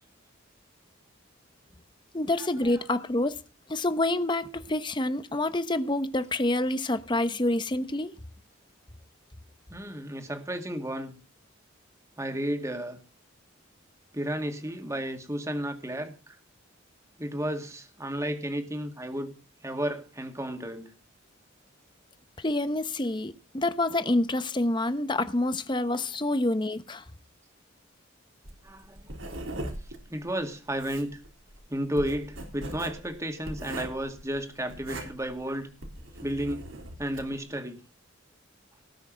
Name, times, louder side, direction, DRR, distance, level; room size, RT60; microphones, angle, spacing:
voice 1, 2.1-3.4 3.7-8.1 22.4-27.0, left 1 dB, 25° left, 0.9 m, -27 dB
voice 2, 9.7-11.1 12.2-13.0 14.1-16.4 17.2-19.3 19.6-20.9 28.6-29.3 30.1-31.2 31.7-35.7 36.2-36.7 37.0-37.8, right 1 dB, 15° right, 2.0 m, -33 dB
Writing, 28.4-37.4, right 1 dB, 80° right, 3.8 m, -40 dB
18.5 x 6.3 x 7.6 m
head